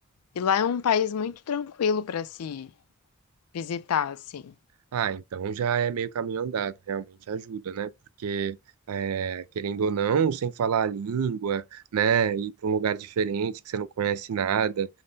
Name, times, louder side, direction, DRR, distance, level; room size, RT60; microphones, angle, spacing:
voice 1, 0.4-2.7 3.5-4.5, left 7 dB, 85° left, 0.4 m, -27 dB
voice 2, 4.9-7.9 8.2-8.6 8.9-14.9, right 7 dB, 80° right, 0.4 m, -27 dB
5.3 x 2.1 x 4.0 m
head